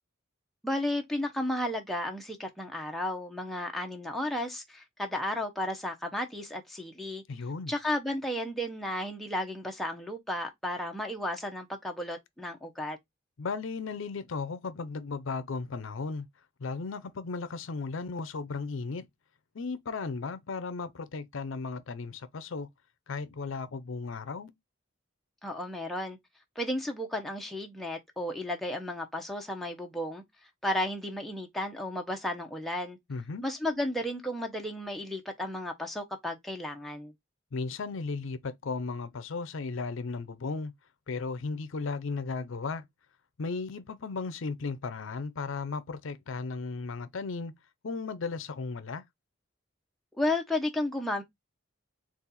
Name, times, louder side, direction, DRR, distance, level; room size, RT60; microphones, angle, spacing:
voice 1, 0.6-7.2 7.7-13.0 25.4-26.2 26.6-30.2 30.6-33.0 33.4-37.1 50.2-51.2, left 1 dB, ahead, 0.6 m, -33 dB
voice 2, 7.3-7.7 13.4-16.3 16.6-19.1 19.5-22.7 23.1-24.5 33.1-33.4 37.5-40.7 41.1-42.8 43.4-47.5 47.8-49.0, left 4 dB, 70° left, 0.5 m, -35 dB
4.1 x 2.4 x 4.0 m
head